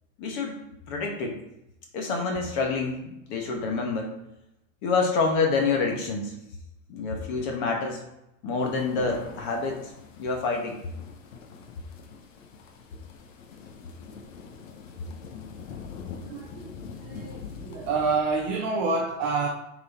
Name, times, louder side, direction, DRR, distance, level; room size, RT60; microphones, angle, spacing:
voice 1, 0.2-0.6 0.9-1.4 1.9-4.1 4.8-6.3 6.9-8.0 8.4-9.8 10.2-10.8, left 4 dB, 35° left, 1 dB, 1.3 m, -27 dB
sound 1, 8.6-18.2, left 5 dB, 70° left, 1.2 m, -43 dB
voice 2, 16.2-19.5, right 4 dB, 20° right, -1 dB, 0.5 m, -28 dB
6.3 x 4.2 x 4.3 m, 0.87 s
supercardioid pair, 165°, 41 cm